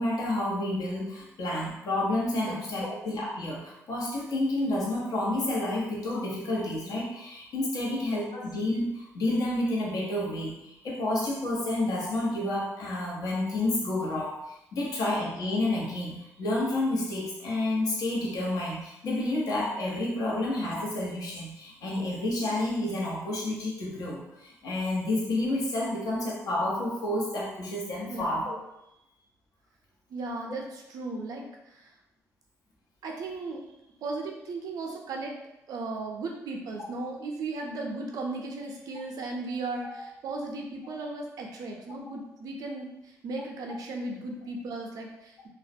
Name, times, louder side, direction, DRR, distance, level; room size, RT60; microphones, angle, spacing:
voice 1, 0.0-28.6, left 1 dB, 65° left, -4 dB, 0.8 m, -30 dB
voice 2, 2.5-2.9 7.8-8.0 28.1-28.6 30.1-31.9 33.0-33.6 34.0-35.4 35.7-45.5, right 3 dB, 65° right, 1 dB, 0.4 m, -36 dB
2.3 x 2.1 x 2.6 m, 0.86 s
supercardioid pair, 60°, 7 cm